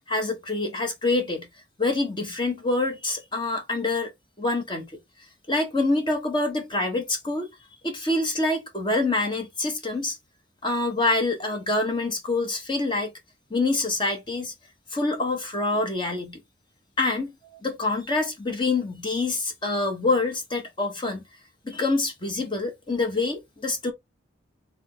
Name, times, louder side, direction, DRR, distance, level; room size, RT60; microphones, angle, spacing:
voice 1, 0.1-1.5 1.8-4.1 4.4-4.8 5.5-7.5 7.8-10.2 10.6-13.1 13.5-14.5 14.9-16.4 17.0-17.3 17.6-21.2 21.6-23.9, left 2 dB, 25° left, 1.1 m, -26 dB
3.9 x 3.6 x 3.7 m
head